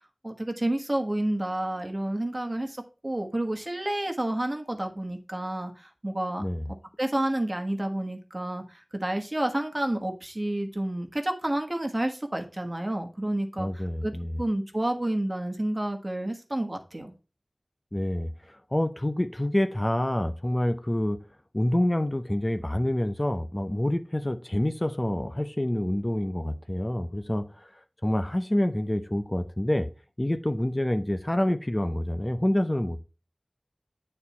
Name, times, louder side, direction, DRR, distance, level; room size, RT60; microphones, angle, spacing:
voice 1, 0.2-6.4 7.0-14.1 14.4-17.1, right 1 dB, 35° right, 1.4 m, -30 dB
voice 2, 6.4-6.7 13.6-14.4 17.9-21.2 21.5-27.7 28.0-29.9 30.2-33.0, left 1 dB, 25° left, 0.7 m, -27 dB
9.1 x 4.4 x 4.2 m
wide cardioid pair, 50°, 0 cm